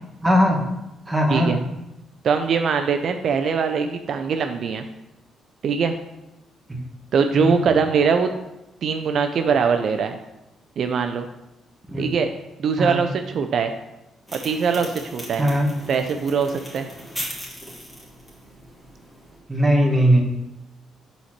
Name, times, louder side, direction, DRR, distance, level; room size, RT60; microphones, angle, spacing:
voice 1, 0.2-0.6 1.1-1.6 6.7-6.8 7.4-7.6 11.9-12.0 12.8-13.0 15.4-15.7 19.5-20.2, equal, 10° right, 1 dB, 1.4 m, -19 dB
voice 2, 2.2-4.8 5.6-5.9 7.1-8.3 8.8-10.2 10.8-11.3 12.0-12.3 12.6-13.1 13.3-13.7 14.3-15.5 15.9-16.9, right 6 dB, 60° right, 6 dB, 0.5 m, -22 dB
sound 1, 14.3-19.4, equal, 15° left, 2.3 m, -38 dB
5.6 x 4.2 x 5.9 m, 0.92 s
cardioid pair, 90°, 0 cm